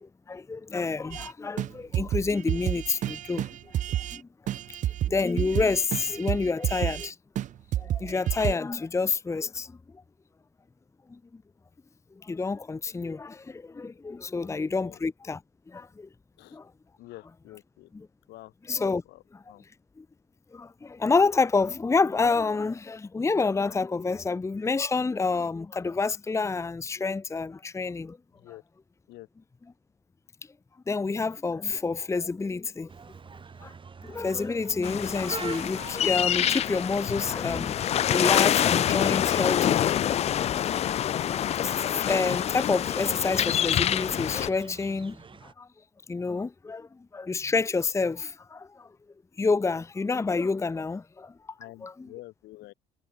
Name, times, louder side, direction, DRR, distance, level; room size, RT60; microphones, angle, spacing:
voice 1, 0.0-3.5 4.1-4.3 4.8-7.2 7.8-9.7 11.1-11.2 12.2-15.4 15.7-16.1 16.5-16.7 18.7-19.0 19.3-19.4 20.0-20.1 20.5-28.2 30.9-32.9 33.6-33.7 34.0-39.8 41.6-45.2 45.4-45.7 46.1-48.9 49.4-51.3 51.8-52.1, left 4 dB, 15° left, 0.9 m, -28 dB
sound 1, 1.1-1.3 1.6-1.7 1.9-4.2 4.5-7.1 7.4-7.5 7.7-8.5, right 12 dB, 50° right, 0.5 m, -30 dB
voice 2, 14.3-15.0 16.4-16.6 17.0-17.9 18.3-18.5 19.1-19.7 28.3-28.6 29.1-29.3 51.6-52.7, left 17 dB, 80° left, 5.8 m, -48 dB
sound 2, 32.9-45.5, right 5 dB, 30° right, 5.7 m, -46 dB
sound 3, 34.8-44.5, left 10 dB, 40° left, 0.4 m, -26 dB
cardioid pair, 110°, 17 cm